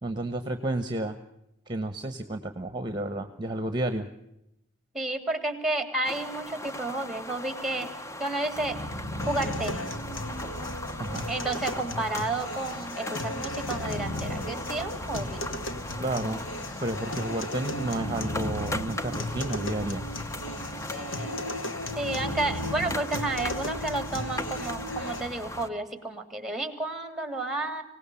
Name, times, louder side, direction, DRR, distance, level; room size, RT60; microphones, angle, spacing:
voice 1, 0.0-1.2 1.7-4.1 11.0-11.3 16.0-16.4 16.8-20.0, right 1 dB, 25° right, 9 dB, 1.3 m, -31 dB
voice 2, 4.9-7.9 8.2-8.8 9.3-10.0 11.3-15.4 20.9-21.4 21.9-27.8, right 2 dB, ahead, 8 dB, 3.0 m, -31 dB
sound 1, 6.0-25.7, left 1 dB, 15° left, 0.8 m, -39 dB
sound 2, 8.5-25.8, equal, 45° left, 3.2 m, -39 dB
sound 3, 9.2-25.2, left 1 dB, 90° left, 2.4 m, -37 dB
25.5 x 18.5 x 7.0 m, 0.81 s
head